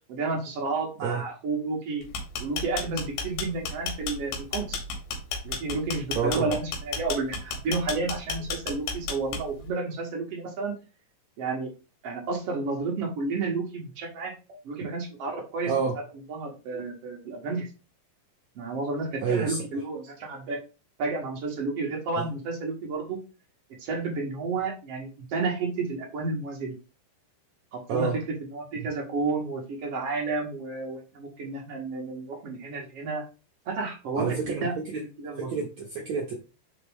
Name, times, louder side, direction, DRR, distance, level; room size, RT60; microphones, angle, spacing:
voice 1, 0.1-2.0 2.4-4.8 5.4-10.8 11.4-11.7 12.0-14.3 14.6-15.7 16.3-17.7 18.5-20.6 21.0-23.2 23.8-26.7 27.7-33.2 33.6-34.7 35.2-35.5, right 3 dB, 75° right, 1.4 m, -31 dB
sound 1, 2.0-9.7, left 5 dB, 75° left, 3.4 m, -32 dB
voice 2, 6.1-6.5 15.6-15.9 19.2-19.6 27.9-28.2 34.2-35.0 35.5-36.3, right 5 dB, 90° right, 1.5 m, -28 dB
5.7 x 5.0 x 3.5 m
omnidirectional pair, 4.9 m